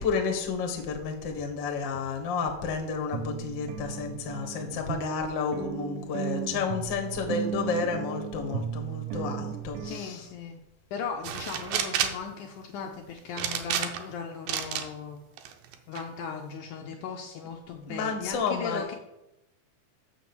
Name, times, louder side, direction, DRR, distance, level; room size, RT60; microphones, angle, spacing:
voice 1, 0.0-10.2 17.9-18.8, left 5 dB, 55° left, 3 dB, 1.3 m, -31 dB
sound 1, 1.4-1.5 1.9-2.0 2.5-2.6 3.1-9.9, right 7 dB, 70° right, 2.2 m, -35 dB
voice 2, 9.8-10.6 10.9-15.2 15.9-18.9, left 6 dB, 75° left, 3 dB, 1.9 m, -37 dB
sound 2, 11.2-12.3 13.4-14.1 14.5-14.9 15.4-16.0, right 9 dB, 85° right, 2.7 m, -30 dB
6.8 x 6.3 x 7.0 m, 0.90 s
omnidirectional pair, 4.1 m